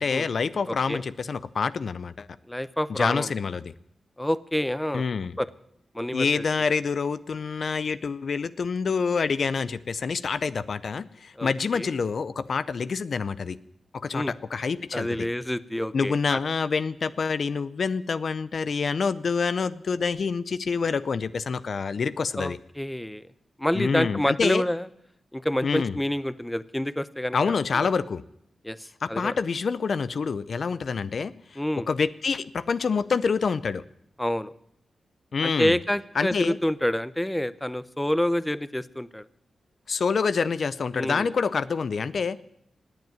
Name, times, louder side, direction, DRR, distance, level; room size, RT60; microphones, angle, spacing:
voice 1, 0.0-2.3 2.9-3.7 4.9-5.4 6.1-13.6 13.9-15.3 15.9-22.6 23.7-24.6 25.6-26.0 27.3-28.2 29.0-31.6 31.9-33.8 35.3-35.8 36.2-36.6 39.9-42.4, left 5 dB, 65° left, 16 dB, 0.5 m, -27 dB
voice 2, 0.7-1.0 2.5-3.3 4.2-5.0 5.4-5.5 5.9-6.4 11.4-11.9 14.1-14.3 14.9-16.4 22.4-23.2 23.6-24.9 25.3-27.9 28.6-29.3 31.6-31.9 34.2-34.5 35.4-39.3 40.9-41.3, left 1 dB, 10° left, 16 dB, 0.7 m, -28 dB
18.5 x 8.0 x 9.4 m, 0.77 s
cardioid pair, 60°, 0 cm